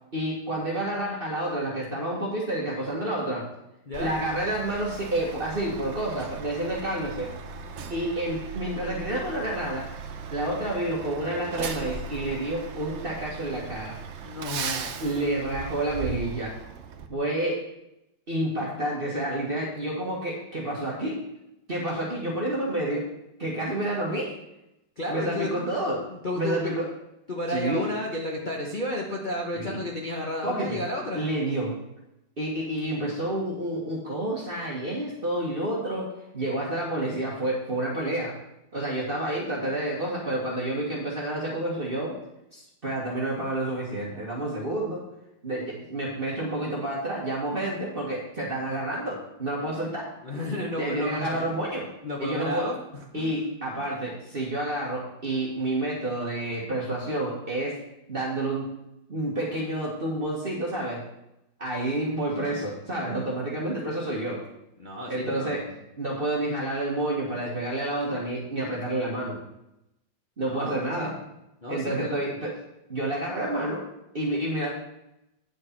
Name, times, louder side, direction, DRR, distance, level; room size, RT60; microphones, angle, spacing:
voice 1, 0.1-3.5 4.0-7.3 7.9-9.9 10.3-14.0 15.0-16.5 17.1-17.6 18.3-21.3 21.7-23.1 23.4-24.3 25.1-26.0 26.3-26.9 27.5-27.9 29.5-29.8 30.4-30.8 31.1-31.8 32.4-36.1 36.3-38.3 38.7-42.2 42.5-45.0 45.4-50.1 50.8-51.9 52.2-52.7 53.1-57.8 58.1-58.7 59.1-61.0 61.6-64.4 65.1-65.6 66.0-69.4 70.4-71.1 71.7-72.5 72.9-73.8 74.1-74.7, right 1 dB, 30° right, -4 dB, 1.5 m, -29 dB
voice 2, 3.9-4.2 14.2-15.1 25.0-25.7 26.1-26.7 27.3-31.3 50.2-51.6 52.0-53.3 64.8-65.8 70.4-71.2 71.6-72.2, left 1 dB, 35° left, -2 dB, 0.8 m, -32 dB
Truck, 3.9-17.1, right 5 dB, 85° right, 0.6 m, -38 dB
9.2 x 6.4 x 4.4 m, 0.87 s
omnidirectional pair, 2.0 m